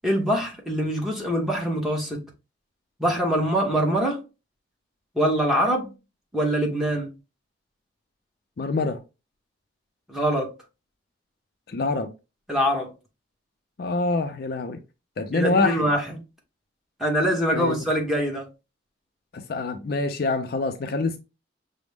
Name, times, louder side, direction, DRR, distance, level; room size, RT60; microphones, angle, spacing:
voice 1, 0.0-2.2 3.0-4.2 5.1-5.9 6.3-7.1 10.1-10.5 12.5-12.9 15.3-16.0 17.0-18.5, equal, ahead, 1.0 m, -24 dB
voice 2, 8.6-9.0 11.7-12.1 13.8-14.8 15.2-15.9 17.5-17.8 19.3-21.2, left 3 dB, 55° left, 0.4 m, -25 dB
6.0 x 2.0 x 3.3 m
head